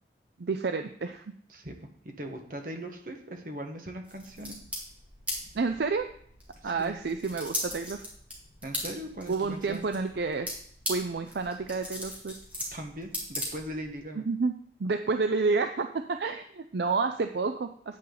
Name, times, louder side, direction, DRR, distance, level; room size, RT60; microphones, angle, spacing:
voice 1, 0.4-1.2 5.5-6.1 6.6-8.0 9.3-10.5 10.9-12.4 14.2-14.5 14.8-18.0, right 4 dB, 65° right, 8 dB, 0.5 m, -29 dB
voice 2, 2.0-4.5 6.6-7.0 8.6-9.9 12.7-14.2, equal, 50° right, 4 dB, 1.4 m, -39 dB
sound 1, 4.0-14.0, left 1 dB, 10° right, 2.3 m, -39 dB
9.2 x 8.5 x 4.0 m, 0.62 s
head